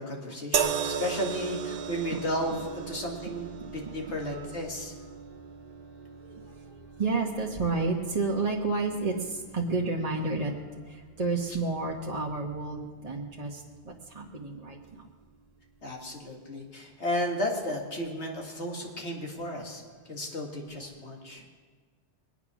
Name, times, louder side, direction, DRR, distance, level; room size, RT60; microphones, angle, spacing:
voice 1, 0.0-3.5 3.7-4.9 15.8-19.8 20.1-21.4, equal, 85° left, 0 dB, 2.4 m, -33 dB
sound 1, 0.5-13.9 14.8-15.0, right 7 dB, 60° right, 0.9 m, -38 dB
voice 2, 4.1-4.4 6.2-6.5 7.0-10.6 10.9-13.6 14.1-14.8, right 3 dB, 35° right, -2 dB, 1.2 m, -30 dB
22.0 x 9.0 x 6.1 m, 1.5 s
omnidirectional pair, 1.1 m